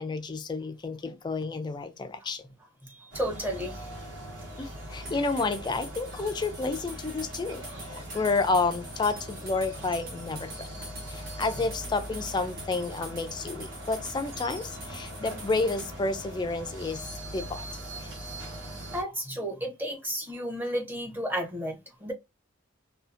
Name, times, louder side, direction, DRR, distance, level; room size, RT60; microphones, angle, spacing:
voice 1, 0.0-2.4 4.6-10.7 11.1-17.6 18.0-18.1, left 3 dB, 20° left, 0.3 m, -30 dB
voice 2, 2.9-3.9 4.2-4.3 18.9-22.1, equal, 10° right, 0.7 m, -33 dB
sound 1, 3.1-19.0, equal, 70° right, 1.1 m, -41 dB
sound 2, 5.0-15.9, right 2 dB, 50° right, 1.2 m, -45 dB
2.7 x 2.4 x 2.4 m
head